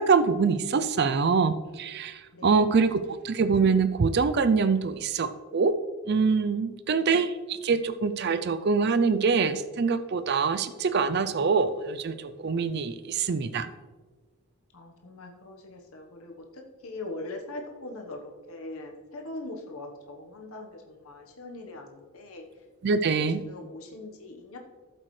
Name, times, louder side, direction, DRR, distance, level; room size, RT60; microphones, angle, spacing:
voice 1, 0.0-3.0 3.2-5.8 6.1-12.1 12.4-13.7 22.8-23.4, right 5 dB, 45° right, 12 dB, 0.4 m, -24 dB
voice 2, 2.3-2.7 6.5-7.1 14.7-22.4 23.0-24.6, left 2 dB, 70° left, 2 dB, 1.2 m, -42 dB
13.5 x 7.6 x 3.2 m, 1.4 s
head